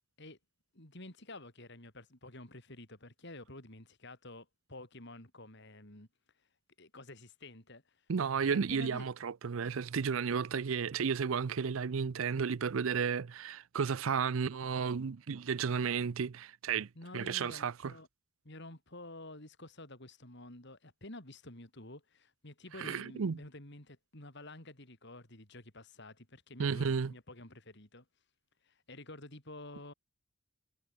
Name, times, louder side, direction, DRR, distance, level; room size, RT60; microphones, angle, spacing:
voice 1, 0.7-6.1 6.8-8.0 8.5-9.1 16.9-18.1 18.4-28.0 28.6-29.9, left 2 dB, 55° left, 4.8 m, -50 dB
voice 2, 8.1-16.9 17.1-17.9 22.8-23.4 26.6-27.1, right 6 dB, 70° right, 0.5 m, -33 dB
head